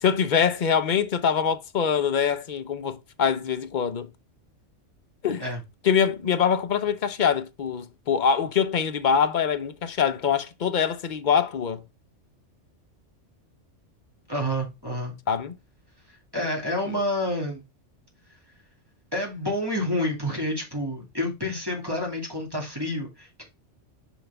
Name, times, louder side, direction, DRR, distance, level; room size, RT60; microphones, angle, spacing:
voice 1, 0.0-4.1 5.2-5.5 5.8-11.8 15.3-15.6 16.8-17.0, left 7 dB, 45° left, 0.7 m, -24 dB
voice 2, 14.3-15.2 16.3-17.6 19.1-23.4, left 1 dB, 20° right, 2.2 m, -28 dB
6.1 x 5.7 x 3.4 m
omnidirectional pair, 1.2 m